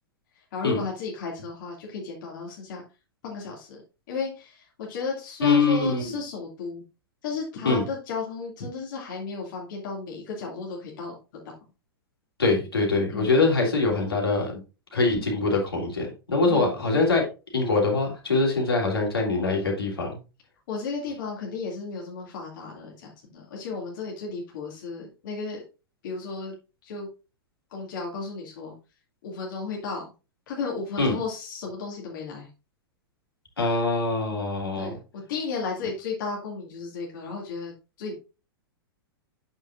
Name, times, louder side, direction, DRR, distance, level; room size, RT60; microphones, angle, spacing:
voice 1, 0.5-2.8 3.2-3.8 4.1-6.8 7.2-11.2 13.1-13.4 16.5-16.7 20.7-25.6 26.0-26.5 26.8-27.1 27.7-28.7 29.2-30.1 30.5-32.5 34.7-38.1, left 4 dB, 55° left, -2 dB, 2.4 m, -34 dB
voice 2, 5.4-6.2 7.6-7.8 12.4-14.6 14.9-17.2 17.5-20.2 31.0-31.2 33.6-34.9, left 3 dB, 80° left, -1 dB, 3.3 m, -23 dB
8.7 x 6.7 x 2.5 m, 0.30 s
figure-of-eight pair, 100°, 12 cm